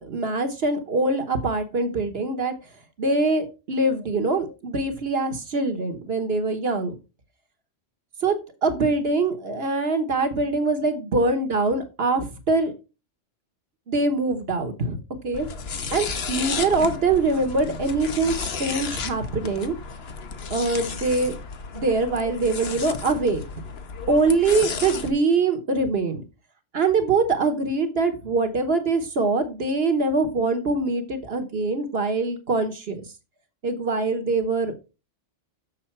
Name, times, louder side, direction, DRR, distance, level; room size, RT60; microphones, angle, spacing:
voice 1, 0.0-2.5 3.0-6.9 8.2-12.7 13.9-15.0 15.2-15.5 15.9-19.7 20.5-21.3 21.7-23.4 24.1-26.2 26.7-33.0 33.6-34.7, right 3 dB, 55° right, 7 dB, 1.3 m, -23 dB
sound 1, 15.3-25.1, left 5 dB, 60° left, 1.1 m, -33 dB
6.7 x 6.6 x 4.4 m, 0.29 s
omnidirectional pair, 1.3 m